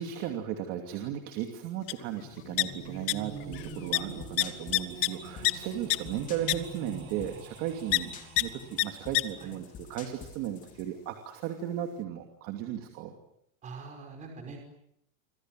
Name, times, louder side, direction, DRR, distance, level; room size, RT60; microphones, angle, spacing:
voice 1, 0.0-8.1 8.4-13.1, right 10 dB, 35° right, 5 dB, 2.8 m, -36 dB
sound 1, 1.9-2.0 2.2-3.1 3.4-3.7 3.9-4.0 4.4-5.5 5.9-6.0 6.5-6.6 7.9-8.0 8.4-8.5 8.8-8.9 9.1-9.2, left 21 dB, 40° left, 1.3 m, -26 dB
sound 2, 2.5-9.4, right 5 dB, 85° right, 7.1 m, -46 dB
sound 3, 3.5-10.9, left 7 dB, 20° left, 3.4 m, -49 dB
voice 2, 13.6-14.6, right 4 dB, 20° right, 3 dB, 5.5 m, -43 dB
29.5 x 26.0 x 7.8 m, 0.76 s
supercardioid pair, 170°, 41 cm